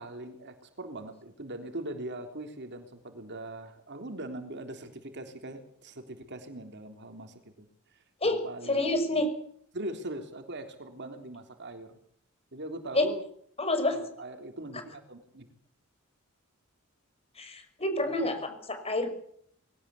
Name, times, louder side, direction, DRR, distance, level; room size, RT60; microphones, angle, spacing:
voice 1, 0.0-9.3 9.7-11.9 12.5-13.2 13.9-15.5 18.0-18.3, right 1 dB, 55° right, 6 dB, 3.6 m, -41 dB
voice 2, 8.7-9.3 12.9-13.1 13.6-14.0 17.4-18.4 18.7-19.1, left 2 dB, 30° left, 8 dB, 5.7 m, -27 dB
22.0 x 18.0 x 8.5 m, 0.63 s
head